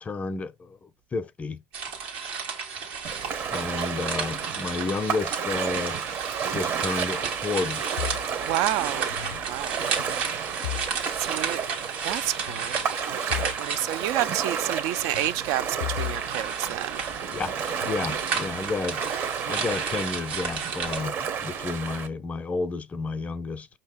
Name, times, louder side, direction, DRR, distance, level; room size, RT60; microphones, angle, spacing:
voice 1, 0.0-1.6 3.5-6.0 6.5-7.9 17.3-19.1 19.5-23.7, left 4 dB, 25° left, 0.5 m, -31 dB
sound 1, 1.7-21.0, right 6 dB, 85° right, 1.4 m, -33 dB
Ocean, 3.0-22.1, right 7 dB, 45° right, 0.8 m, -32 dB
sound 2, 8.0-9.5 9.8-11.4 11.6-11.9 12.5-13.6 13.9-14.0 15.1-17.2 17.8-18.6, left 14 dB, 85° left, 0.4 m, -37 dB
voice 2, 8.4-9.2 9.5-9.8 11.2-11.6 12.0-12.8 13.1-17.0, right 13 dB, 65° right, 0.3 m, -29 dB
5.5 x 2.7 x 3.5 m
supercardioid pair, 95°, 6 cm